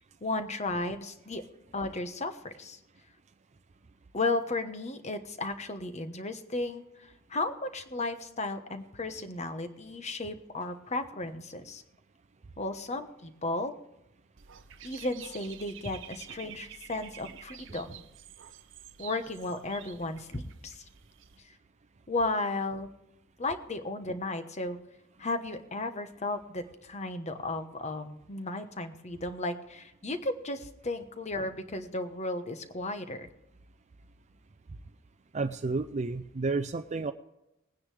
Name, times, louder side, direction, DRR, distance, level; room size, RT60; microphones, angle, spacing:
voice 1, 0.2-1.4 1.7-2.8 4.1-11.8 12.6-13.7 14.8-18.0 19.0-20.8 21.4-21.5 22.1-22.9 23.4-24.8 25.2-33.3, left 2 dB, 35° left, 9 dB, 1.1 m, -34 dB
Dog / Bird, 14.4-21.4, right 10 dB, 70° right, 0.8 m, -49 dB
voice 2, 35.3-37.1, right 3 dB, 35° right, 6 dB, 0.5 m, -31 dB
20.5 x 9.7 x 3.3 m, 0.90 s
head